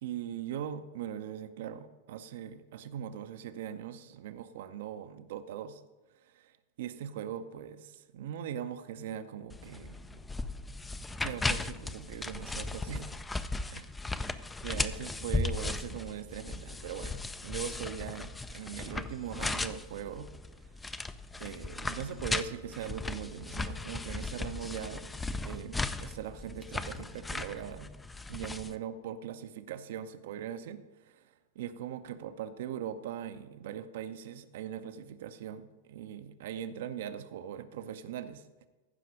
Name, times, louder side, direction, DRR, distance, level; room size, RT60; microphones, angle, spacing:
voice 1, 0.0-5.8 6.2-10.2 11.2-13.2 13.7-13.8 14.6-20.3 21.4-25.1 25.4-27.9 28.3-38.7, right 9 dB, 55° right, 11 dB, 0.6 m, -40 dB
sound 1, 9.5-28.8, left 3 dB, 10° left, 0.4 m, -37 dB
sound 2, 21.4-26.5, left 5 dB, 55° left, 1.1 m, -57 dB
15.0 x 5.8 x 5.0 m, 1.2 s
figure-of-eight pair, 90°, 0 cm